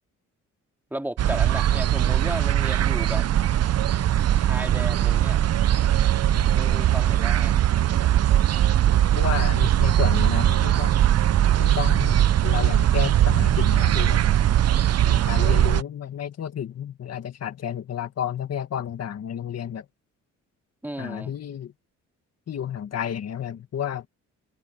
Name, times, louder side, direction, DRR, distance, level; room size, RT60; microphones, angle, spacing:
voice 1, 0.9-3.3 4.3-5.4 6.5-7.6 20.8-21.3, right 1 dB, 5° right, 3.4 m, -34 dB
sound 1, 1.2-15.8, right 11 dB, 55° right, 0.8 m, -20 dB
voice 2, 6.2-6.7 9.2-11.0 11.6-14.2 15.0-19.9 21.0-21.7 22.5-24.1, left 9 dB, 55° left, 2.1 m, -31 dB
cardioid pair, 90°, 30 cm